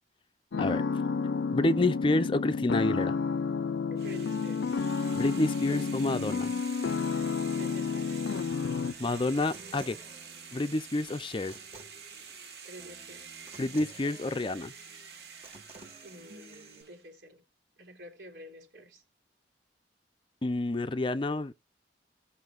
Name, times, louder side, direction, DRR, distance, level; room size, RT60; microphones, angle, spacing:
sound 1, 0.5-8.9, left 5 dB, 90° left, 0.5 m, -30 dB
voice 1, 0.5-0.9 3.9-4.8 5.7-5.9 7.5-8.3 12.6-13.4 16.0-17.4 17.8-19.0, right 1 dB, 80° right, 3.3 m, -49 dB
voice 2, 1.5-3.2 5.1-6.5 9.0-10.0 10.5-11.5 13.6-14.7 20.4-21.5, left 2 dB, 30° left, 0.5 m, -29 dB
sound 2, 4.0-17.0, right 6 dB, 60° right, 1.5 m, -48 dB
Human voice / Acoustic guitar, 8.8-16.8, right 2 dB, 35° right, 1.6 m, -53 dB
17.0 x 5.7 x 2.4 m
head